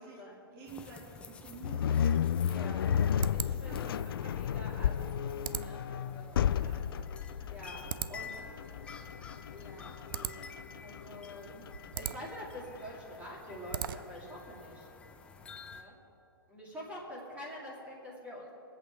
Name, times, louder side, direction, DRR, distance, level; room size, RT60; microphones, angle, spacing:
voice 1, 0.0-0.3 2.4-3.8 4.2-6.5 7.5-7.8 8.1-8.4 9.5-10.5 10.8-11.5 12.0-14.9 15.7-16.0 16.5-18.5, equal, 10° right, -5 dB, 2.3 m, -46 dB
voice 2, 0.5-2.1 3.2-4.3 5.3-5.6 6.4-7.6 8.1-8.8 11.3-11.7 15.2-15.4, right 4 dB, 25° right, -6 dB, 2.7 m, -52 dB
sound 1, 0.7-15.8, left 5 dB, 10° left, 0.5 m, -51 dB
sound 2, 1.6-12.8, left 9 dB, 70° left, 0.4 m, -33 dB
sound 3, 3.1-14.3, right 10 dB, 60° right, 0.5 m, -43 dB
21.5 x 8.2 x 4.6 m, 2.8 s
hypercardioid pair, 155°, 13 cm